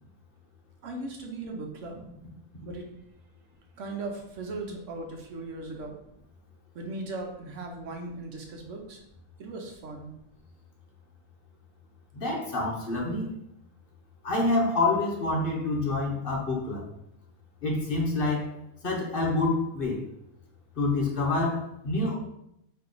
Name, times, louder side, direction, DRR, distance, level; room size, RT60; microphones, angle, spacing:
voice 1, 0.8-2.0 2.6-2.9 3.8-6.0 6.7-9.0 9.4-10.1, right 2 dB, 70° right, 1 dB, 1.2 m, -38 dB
voice 2, 12.1-13.3 14.2-16.8 17.6-18.5 18.8-20.0 20.8-22.2, left 2 dB, 45° left, -1 dB, 1.0 m, -27 dB
4.4 x 2.9 x 3.8 m, 0.79 s
omnidirectional pair, 1.3 m